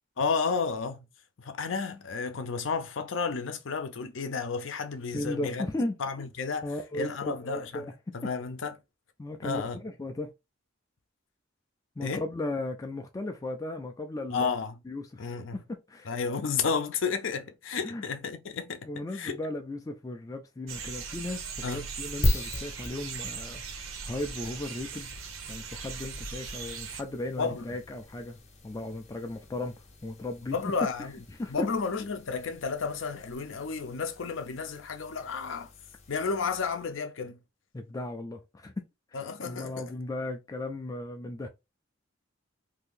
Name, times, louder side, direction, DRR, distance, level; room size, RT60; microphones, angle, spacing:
voice 1, 0.2-1.1 1.4-5.6 6.0-6.7 6.9-7.9 8.1-8.8 9.4-9.8 12.0-12.2 14.3-14.8 15.2-15.6 16.1-18.9 19.1-19.4 21.6-21.9 27.4-27.6 30.5-31.2 31.5-35.7 36.1-37.4 39.1-39.9, left 5 dB, 70° left, 0.6 m, -32 dB
voice 2, 5.1-5.9 6.6-7.9 9.2-10.3 12.0-14.5 14.9-16.1 17.8-18.0 18.9-23.6 24.0-25.1 25.5-28.4 28.6-29.7 30.0-30.6 31.4-31.7 37.7-38.8 39.4-41.5, left 2 dB, 15° left, 0.3 m, -36 dB
sound 1, 20.7-27.0, right 5 dB, 80° right, 0.8 m, -39 dB
sound 2, 22.2-37.0, left 1 dB, 35° left, 0.8 m, -38 dB
2.7 x 2.5 x 3.7 m
head